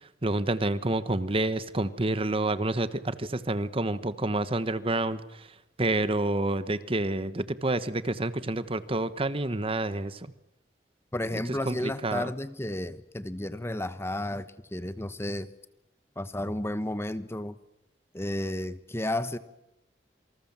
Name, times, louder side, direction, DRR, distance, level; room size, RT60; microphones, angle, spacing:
voice 1, 0.2-5.2 5.8-10.3 11.6-12.3, right 2 dB, 35° right, 14 dB, 1.2 m, -28 dB
voice 2, 11.1-15.5 16.2-17.6 18.1-19.4, left 1 dB, 15° left, 13 dB, 1.1 m, -32 dB
28.0 x 25.0 x 7.4 m, 0.86 s
head